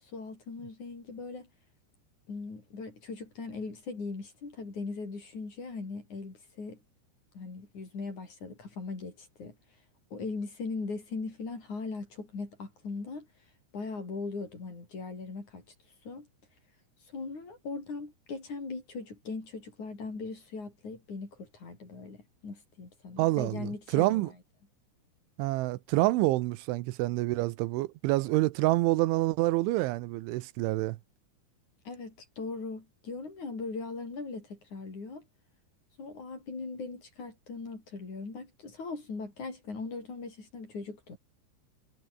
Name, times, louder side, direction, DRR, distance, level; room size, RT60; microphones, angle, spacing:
voice 1, 0.0-1.5 2.3-6.8 7.3-9.6 10.1-13.3 13.7-15.6 16.0-16.3 17.1-24.3 31.8-35.2 36.0-41.2, left 4 dB, 40° left, 6.8 m, -39 dB
voice 2, 23.2-24.3 25.4-31.0, right 19 dB, 80° right, 3.1 m, -27 dB
omnidirectional pair, 5.7 m